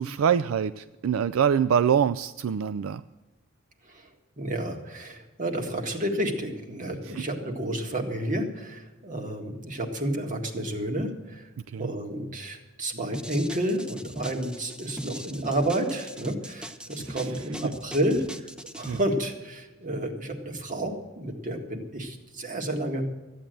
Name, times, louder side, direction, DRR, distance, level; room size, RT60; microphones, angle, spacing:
voice 1, 0.0-3.0 7.2-7.3 11.7-11.9 17.1-17.2 17.6-17.7 18.9-19.0, right 8 dB, 75° right, 14 dB, 0.4 m, -25 dB
voice 2, 4.4-11.5 11.8-18.2 18.8-23.0, right 1 dB, 40° right, 3 dB, 1.8 m, -30 dB
sound 1, 13.1-19.0, right 1 dB, 5° right, 0.5 m, -40 dB
14.0 x 8.6 x 7.7 m, 1.1 s
head